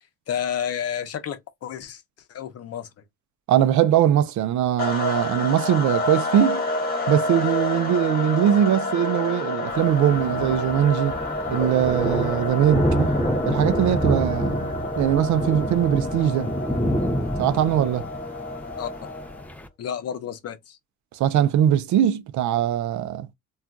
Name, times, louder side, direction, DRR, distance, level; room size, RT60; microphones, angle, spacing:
voice 1, 0.3-2.0 2.3-2.9 18.8-18.9 19.8-20.8, left 9 dB, 55° left, 0.6 m, -30 dB
voice 2, 3.5-6.6 7.1-11.2 11.5-13.1 13.5-14.6 15.0-16.5 17.4-18.1 21.1-23.3, right 10 dB, 70° right, 0.5 m, -21 dB
sound 1, 4.8-19.5, left 2 dB, 30° left, 1.3 m, -29 dB
Thunder, 9.7-19.7, equal, 5° left, 0.4 m, -28 dB
2.4 x 2.2 x 3.8 m
cardioid pair, 90°, 30 cm